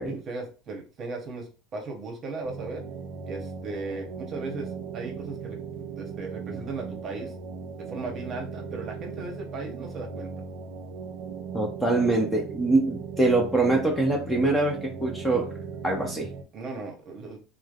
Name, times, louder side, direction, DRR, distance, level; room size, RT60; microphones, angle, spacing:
voice 1, 0.0-2.8 3.3-4.7 4.9-7.3 7.8-10.3 16.5-17.4, right 3 dB, 35° right, 2 dB, 0.9 m, -37 dB
sound 1, 2.4-16.4, right 5 dB, 80° right, 0.6 m, -38 dB
voice 2, 11.5-15.5 15.8-16.3, right 2 dB, 5° left, 0 dB, 0.6 m, -24 dB
3.1 x 2.1 x 2.4 m, 0.34 s
supercardioid pair, 135°, 0 cm